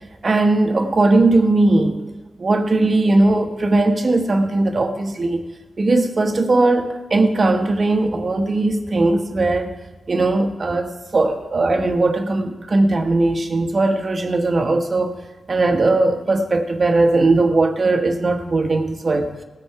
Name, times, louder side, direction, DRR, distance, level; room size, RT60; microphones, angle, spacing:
voice 1, 0.2-2.1 2.4-5.4 5.8-9.7 10.1-15.1 15.5-19.3, right 2 dB, 40° right, 5 dB, 1.3 m, -18 dB
19.0 x 6.6 x 4.8 m, 1.2 s
cardioid pair, 85°, 0 cm